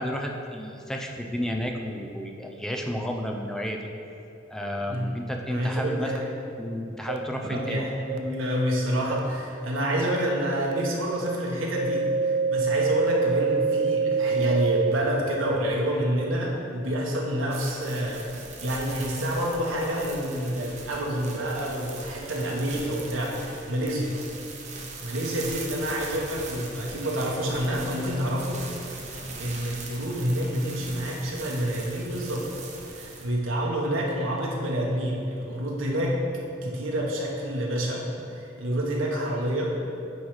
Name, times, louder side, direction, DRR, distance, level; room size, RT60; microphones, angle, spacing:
voice 1, 0.0-3.9 4.5-6.2 6.6-7.8, equal, 5° left, 1 dB, 0.5 m, -32 dB
voice 2, 5.5-6.3 7.4-24.1 25.0-28.6 29.1-32.6 32.9-36.2 36.6-39.7, equal, 85° right, -2 dB, 1.1 m, -28 dB
sound 1, 6.1-6.2 7.1-7.2 8.1-8.2 9.1-9.2 10.1-10.2 10.7-10.8 11.3-11.4 11.8-14.9, right 5 dB, 55° right, 0.4 m, -25 dB
sound 2, 17.5-33.3, right 3 dB, 35° right, 0.8 m, -41 dB
9.3 x 3.2 x 4.8 m, 2.8 s
head